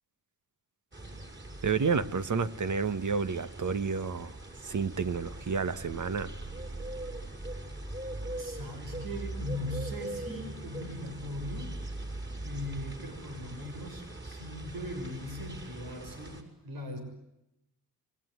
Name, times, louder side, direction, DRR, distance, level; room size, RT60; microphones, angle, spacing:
sound 1, 0.9-16.4, right 1 dB, 30° right, 6.2 m, -41 dB
voice 1, 1.6-4.3 4.6-6.3, right 5 dB, 55° right, 1.6 m, -30 dB
voice 2, 8.4-11.7 12.4-17.0, left 1 dB, 85° right, 6.6 m, -39 dB
27.5 x 22.0 x 9.7 m
cardioid pair, 65°, 36 cm